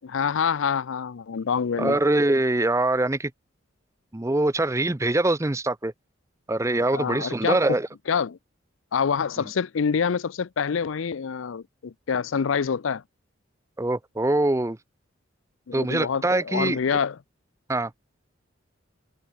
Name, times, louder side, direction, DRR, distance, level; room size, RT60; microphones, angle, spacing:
voice 1, 0.0-2.0 6.9-7.6 8.1-8.4 8.9-13.0 15.7-17.2, left 6 dB, 80° left, 0.5 m, -26 dB
voice 2, 1.8-3.3 4.1-5.9 6.5-7.9 13.8-14.8 15.7-17.0 17.7-17.9, right 2 dB, 15° right, 0.6 m, -23 dB
head